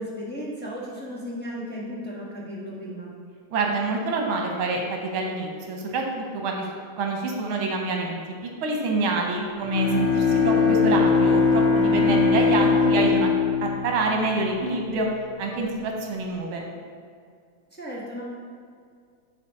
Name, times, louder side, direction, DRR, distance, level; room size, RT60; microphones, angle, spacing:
voice 1, 0.0-3.1 9.0-9.5 11.8-12.1 17.7-18.2, equal, 10° left, -6 dB, 0.6 m, -35 dB
voice 2, 3.5-6.6 7.0-8.2 8.6-13.3 13.6-15.1 15.4-16.6, right 3 dB, 75° right, 1 dB, 1.7 m, -27 dB
Bowed string instrument, 9.6-14.7, left 4 dB, 75° left, 1.6 m, -21 dB
7.2 x 4.2 x 5.2 m, 2.2 s
omnidirectional pair, 2.3 m